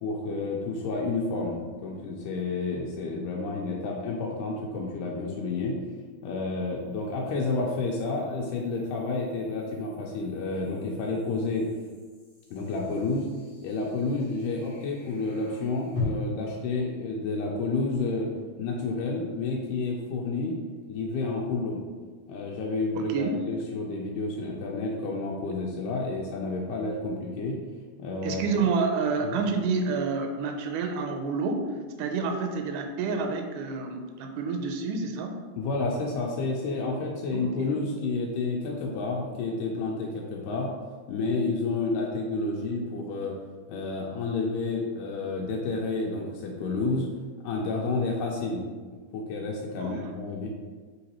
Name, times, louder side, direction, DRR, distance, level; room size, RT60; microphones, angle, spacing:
voice 1, 0.0-5.8 6.2-11.7 12.5-13.3 13.6-18.3 18.6-20.5 20.9-21.8 22.3-27.6 28.0-28.4 29.2-29.4 35.6-40.7 41.1-43.4 43.7-47.1 47.4-48.6 49.1-50.5, left 3 dB, 90° left, -2 dB, 2.1 m, -30 dB
sound 1, 2.4-2.5 5.9-16.0, left 5 dB, 50° left, 1.5 m, -46 dB
voice 2, 22.9-23.4 28.2-31.7 32.0-35.4 37.3-37.8 49.8-50.1, right 4 dB, 85° right, 3 dB, 2.1 m, -29 dB
4.6 x 3.9 x 2.9 m, 1.5 s
omnidirectional pair, 3.6 m